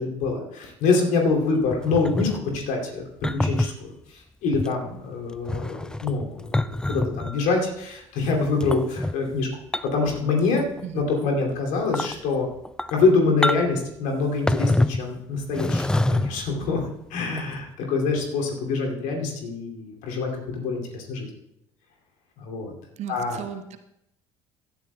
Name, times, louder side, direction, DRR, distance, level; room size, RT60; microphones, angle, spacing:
voice 1, 0.0-2.3 2.5-3.0 3.3-6.3 6.5-9.5 9.8-10.6 10.9-12.5 12.9-16.8 17.1-21.3 22.4-22.7 23.1-23.4, left 4 dB, 60° left, 1 dB, 2.6 m, -25 dB
sound 1, 1.7-2.4 3.2-3.7 4.5-4.7 5.3-7.4 8.6-9.1 9.7-10.1 10.4-10.8 11.2-11.3 11.8-12.1 12.6-13.0 13.4-13.8 14.5-15.1 15.5-16.5 17.4-17.5, left 1 dB, 5° left, 0.3 m, -26 dB
voice 2, 23.0-23.8, right 9 dB, 50° right, 8 dB, 1.0 m, -35 dB
16.0 x 12.5 x 2.3 m, 0.80 s
figure-of-eight pair, 55°, 15 cm